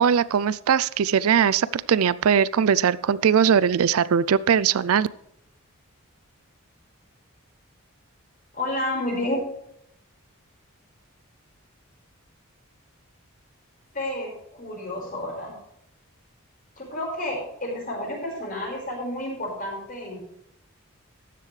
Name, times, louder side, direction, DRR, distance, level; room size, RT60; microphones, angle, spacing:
voice 1, 0.0-5.1, right 7 dB, 80° right, 19 dB, 0.4 m, -20 dB
voice 2, 8.5-9.4 13.9-15.6 16.8-20.3, left 1 dB, 40° left, -1 dB, 5.0 m, -30 dB
13.5 x 10.5 x 3.3 m, 0.74 s
head